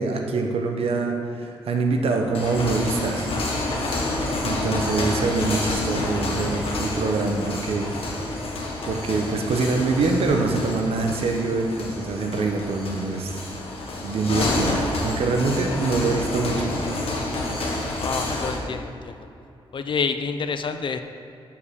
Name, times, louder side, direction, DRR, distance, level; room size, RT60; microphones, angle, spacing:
voice 1, 0.0-3.4 4.4-7.9 8.2-8.4 8.8-13.4 14.0-14.8 15.0-16.7, right 3 dB, 85° right, 3 dB, 1.0 m, -24 dB
sound 1, 2.2-18.6, left 2 dB, 80° left, 1.5 m, -28 dB
voice 2, 18.0-19.2 19.7-21.0, left 5 dB, 55° left, 8 dB, 0.6 m, -28 dB
7.1 x 5.6 x 6.6 m, 2.7 s
cardioid pair, 100°, 10 cm